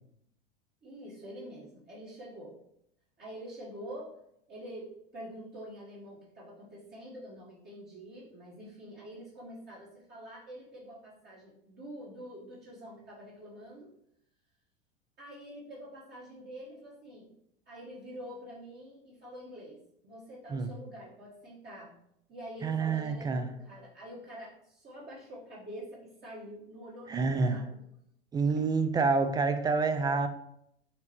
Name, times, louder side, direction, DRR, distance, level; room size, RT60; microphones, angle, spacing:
voice 1, 0.8-2.5 3.2-4.1 4.5-13.9 15.2-17.3 17.7-19.8 20.0-21.9 22.3-27.8 28.5-28.6, equal, 35° right, -6 dB, 1.3 m, -46 dB
voice 2, 22.6-23.5 27.1-27.6 28.3-30.3, right 4 dB, 15° right, 9 dB, 0.3 m, -28 dB
5.8 x 2.9 x 3.0 m, 0.76 s
hypercardioid pair, 95°, 30 cm